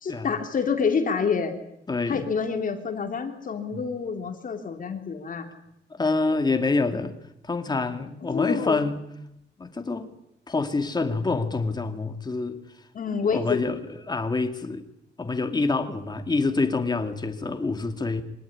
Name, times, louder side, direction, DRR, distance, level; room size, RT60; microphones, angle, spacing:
voice 1, 0.0-1.6 2.1-5.5 8.2-8.8 12.9-13.6, left 5 dB, 45° left, 3.1 m, -27 dB
voice 2, 1.9-2.2 3.7-3.8 5.9-7.2 7.4-9.0 9.6-10.1 10.5-12.6 13.3-14.8 15.2-18.2, left 3 dB, 20° left, 2.5 m, -26 dB
24.5 x 19.0 x 10.0 m
cardioid pair, 130°, 19 cm